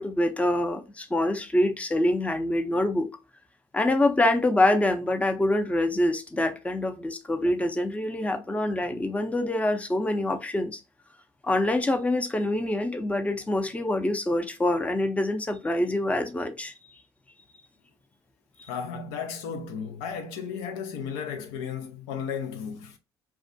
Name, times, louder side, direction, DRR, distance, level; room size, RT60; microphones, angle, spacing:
voice 1, 0.0-3.1 3.7-10.8 11.4-16.7, left 1 dB, 10° left, 0.5 m, -25 dB
voice 2, 18.7-23.0, left 6 dB, 75° left, 0.4 m, -34 dB
2.4 x 2.2 x 2.5 m
hypercardioid pair, 55°, 13 cm